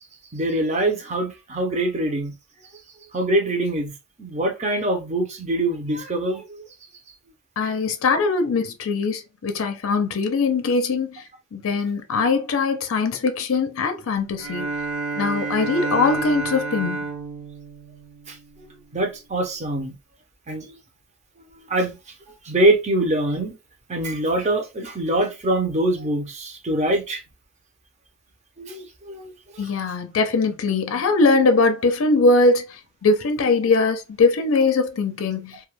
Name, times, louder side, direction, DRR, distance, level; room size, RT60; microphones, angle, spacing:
voice 1, 0.3-2.3 3.1-3.9 4.2-6.6 7.6-7.7 18.3-18.4 18.9-19.9 20.5-20.8 21.7-22.0 22.4-23.5 23.9-27.2 28.6-29.7, right 1 dB, 30° right, 0.6 m, -24 dB
voice 2, 7.6-11.2 11.5-14.7 15.1-17.0 29.6-35.6, left 3 dB, 70° left, 0.4 m, -21 dB
Bowed string instrument, 14.4-18.8, right 3 dB, 65° right, 0.9 m, -30 dB
2.2 x 2.1 x 3.0 m
head